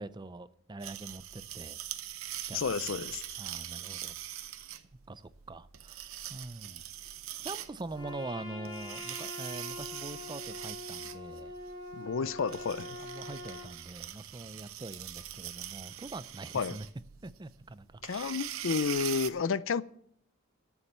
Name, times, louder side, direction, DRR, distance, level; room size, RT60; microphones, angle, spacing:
voice 1, 0.0-1.8 2.5-3.0 3.4-4.2 5.1-6.0 6.3-7.1 7.4-11.5 12.2-12.3 13.0-16.9 17.2-18.3, right 2 dB, 20° right, 0.5 m, -44 dB
sound 1, 0.8-19.3, right 12 dB, 90° right, 0.8 m, -43 dB
voice 2, 2.5-3.2 11.9-13.0 16.5-16.8 18.0-19.8, left 5 dB, 65° left, 0.5 m, -31 dB
Trumpet, 7.9-13.7, left 2 dB, 25° left, 4.0 m, -44 dB
13.0 x 7.2 x 6.7 m
head